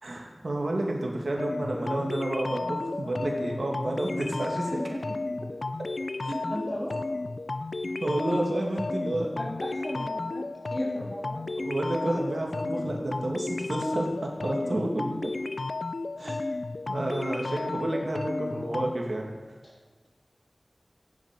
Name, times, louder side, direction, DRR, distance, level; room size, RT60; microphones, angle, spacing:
voice 1, 0.0-4.8 6.2-6.4 8.0-9.3 11.6-15.3 16.2-16.4 16.9-19.3, right 1 dB, 70° right, 0 dB, 2.4 m, -30 dB
sound 1, 1.4-19.0, left 3 dB, 80° left, 0.5 m, -33 dB
voice 2, 4.7-5.0 6.5-6.9 9.4-11.4 19.6-19.7, equal, 25° left, -2 dB, 3.2 m, -35 dB
14.5 x 10.5 x 5.3 m, 1.3 s
wide cardioid pair, 55°, 0 cm